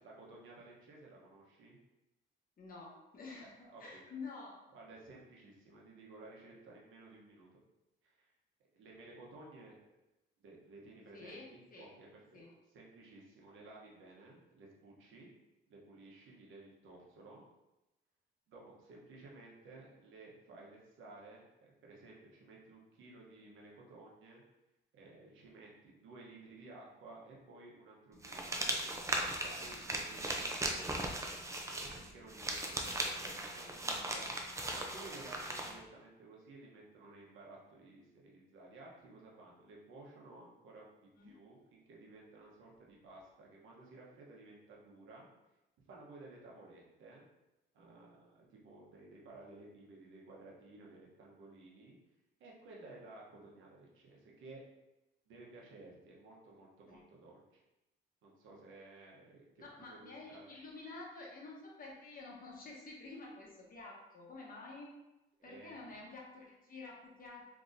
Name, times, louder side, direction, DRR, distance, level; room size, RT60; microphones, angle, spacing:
voice 1, 0.0-1.8 3.4-4.0 4.7-7.5 8.0-8.3 8.7-9.9 10.4-12.4 12.7-15.3 15.7-17.5 18.5-24.4 24.9-29.1 29.4-30.9 31.6-34.4 34.7-40.9 41.2-45.3 45.9-47.3 47.7-52.0 52.4-54.6 55.3-57.6 58.2-60.5 65.4-65.7, right 2 dB, 80° right, -3 dB, 1.0 m, -55 dB
voice 2, 2.6-4.6 11.1-11.5 11.7-11.9 12.3-12.5 41.1-41.3 56.9-57.0 59.6-64.9 65.4-67.4, left 3 dB, 45° left, -2 dB, 1.0 m, -49 dB
sound 1, 28.2-35.7, right 1 dB, 15° right, 0.5 m, -38 dB
3.7 x 2.9 x 2.6 m, 0.97 s
cardioid pair, 90°, 20 cm